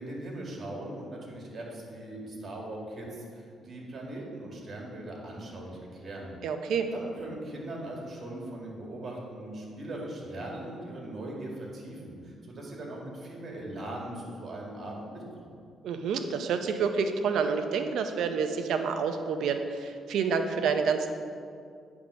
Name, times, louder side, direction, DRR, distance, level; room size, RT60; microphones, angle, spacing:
voice 1, 0.0-6.3 6.9-15.6, right 1 dB, 45° right, -2 dB, 2.0 m, -40 dB
voice 2, 6.4-6.9 15.8-21.1, right 5 dB, 75° right, 7 dB, 0.6 m, -28 dB
9.0 x 3.6 x 6.2 m, 2.3 s
cardioid pair, 90°, 0 cm